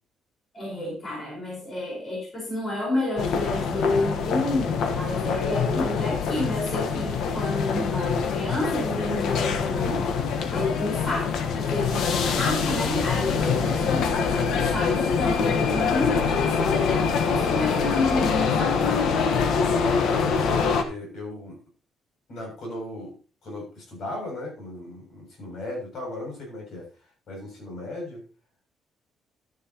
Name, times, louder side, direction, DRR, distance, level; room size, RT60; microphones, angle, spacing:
voice 1, 0.5-10.1 10.5-19.1, left 2 dB, 25° left, -3 dB, 4.8 m, -30 dB
sound 1, 3.2-20.8, left 6 dB, 75° left, 1.3 m, -25 dB
voice 2, 13.4-13.9 19.9-21.6 22.3-23.1 23.4-26.9 27.3-28.2, left 2 dB, 55° left, 0 dB, 7.1 m, -35 dB
12.0 x 10.5 x 3.0 m, 0.34 s
cardioid pair, 155°, 0 cm